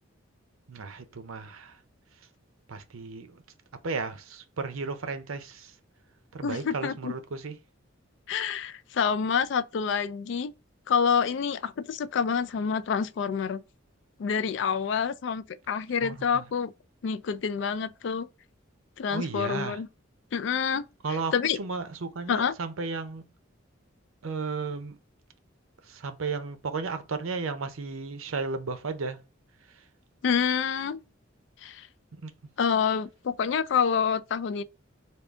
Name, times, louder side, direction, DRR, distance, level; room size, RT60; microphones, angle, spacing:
voice 1, 0.7-1.8 2.7-3.4 3.8-5.7 6.3-7.6 16.0-16.4 19.1-19.8 21.0-23.3 24.2-25.0 25.8-29.2 32.2-32.3, right 4 dB, 85° right, 0.6 m, -34 dB
voice 2, 6.4-7.1 8.3-10.5 10.9-13.6 14.2-16.7 17.0-18.3 19.0-19.9 20.3-20.9 21.3-21.6 22.3-22.5 30.2-31.0 31.6-31.9 32.6-34.6, left 6 dB, 60° left, 0.3 m, -27 dB
3.6 x 2.3 x 3.5 m
head